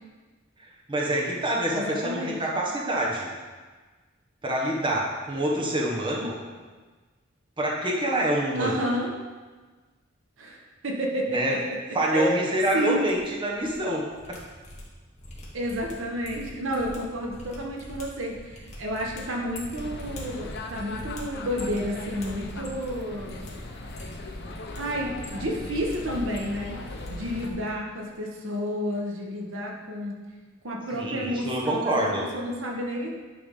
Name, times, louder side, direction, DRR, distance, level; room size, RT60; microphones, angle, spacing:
voice 1, 0.6-3.3 4.4-6.3 7.6-8.7 11.3-11.5 11.9-14.4 30.9-32.2, right 1 dB, 25° right, -3 dB, 1.2 m, -26 dB
voice 2, 1.7-2.4 8.5-9.1 10.4-11.6 12.1-12.4 12.7-13.0 15.5-23.4 24.8-26.8 27.1-30.2 30.6-33.1, equal, 80° right, 0 dB, 1.1 m, -30 dB
sound 1, 12.9-13.8 14.0-23.0 23.2-23.5 23.8-24.8 25.1-26.0 26.2-27.1 27.4-27.7 27.9-28.2, left 1 dB, 40° left, 1.6 m, -44 dB
sound 2, 19.8-27.5, left 2 dB, 60° left, 0.8 m, -38 dB
10.0 x 3.5 x 5.4 m, 1.4 s
head